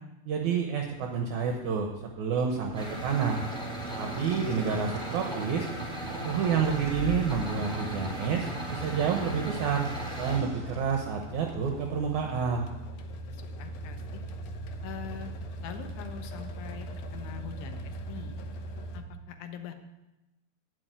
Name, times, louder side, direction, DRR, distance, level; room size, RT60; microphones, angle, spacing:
voice 1, 0.3-3.4 4.0-5.7 6.2-9.9 10.2-12.7, right 6 dB, 70° right, 2 dB, 2.2 m, -29 dB
sound 1, 1.0-19.0, equal, 85° left, 2.8 m, -42 dB
sound 2, 2.5-12.4, left 3 dB, 15° right, 3.8 m, -46 dB
sound 3, 2.7-10.4, right 1 dB, ahead, 2.8 m, -36 dB
voice 2, 13.3-14.2 14.8-15.3 15.6-16.9 17.1-18.4 18.9-19.7, left 8 dB, 70° left, 6 dB, 2.3 m, -43 dB
11.0 x 6.7 x 9.1 m, 1.0 s
omnidirectional pair, 4.0 m